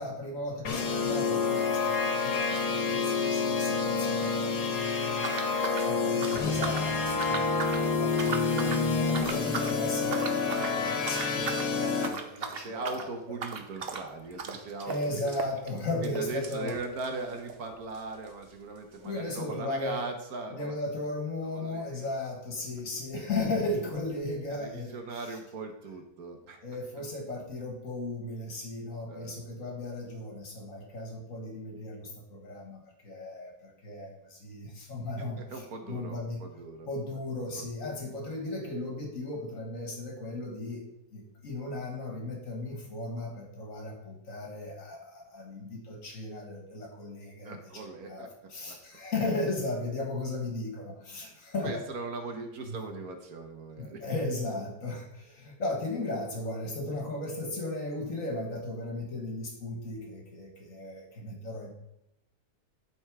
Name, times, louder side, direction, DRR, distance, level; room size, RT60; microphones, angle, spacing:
voice 1, 0.0-13.4 14.9-16.8 19.0-20.1 20.5-25.4 26.6-36.4 36.9-51.8 52.7-52.8 53.8-61.7, left 2 dB, 50° left, 1 dB, 2.0 m, -36 dB
sound 1, 0.6-12.1, left 4 dB, 70° left, 1.8 m, -28 dB
sound 2, 5.2-6.9 7.2-7.8 8.1-8.8 9.1-9.8 10.1-10.8 11.1-11.7 12.0-17.6 17.9-18.0 18.2-18.3 19.0-19.1, right 5 dB, 50° right, 0.8 m, -38 dB
voice 2, 12.5-15.4 16.0-20.7 21.5-22.1 24.6-26.6 29.1-29.3 35.4-36.9 37.6-37.7 47.4-48.3 48.7-48.8 51.6-54.1, right 3 dB, 65° right, 5 dB, 1.5 m, -39 dB
11.5 x 4.5 x 4.7 m, 0.86 s
omnidirectional pair, 1.7 m